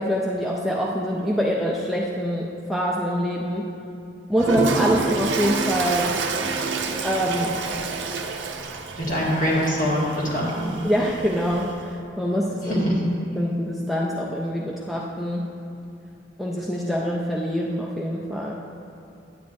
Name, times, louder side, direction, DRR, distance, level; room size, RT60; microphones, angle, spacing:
voice 1, 0.0-3.7 4.3-6.1 7.0-7.6 10.8-12.8 13.4-15.5 16.4-18.5, equal, ahead, -4 dB, 0.4 m, -25 dB
Toilet flush, 4.4-11.9, right 4 dB, 75° right, 0.5 m, -28 dB
voice 2, 9.0-10.7 12.6-13.0, equal, 45° left, -6 dB, 1.8 m, -23 dB
9.4 x 9.0 x 2.6 m, 2.7 s
head